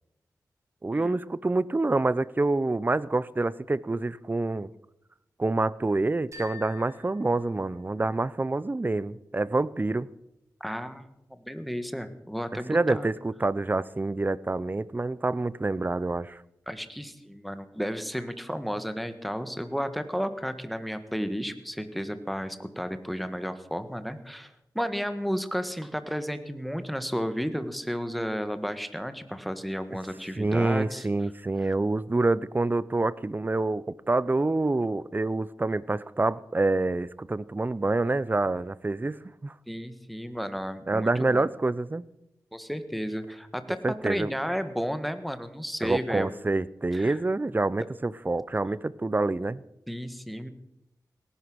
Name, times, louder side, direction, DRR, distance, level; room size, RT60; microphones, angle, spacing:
voice 1, 0.8-4.7 5.4-10.1 12.5-16.4 30.4-39.5 40.9-42.0 43.8-44.3 45.8-49.6, right 2 dB, 25° right, 19 dB, 0.6 m, -27 dB
sound 1, 6.3-8.2, left 5 dB, 45° right, 6.5 m, -47 dB
voice 2, 10.6-13.1 16.7-31.1 39.7-41.5 42.5-46.3 46.9-47.2 49.9-50.5, equal, ahead, 10 dB, 1.6 m, -33 dB
18.5 x 11.0 x 6.3 m, 0.86 s
cardioid pair, 60°, 7 cm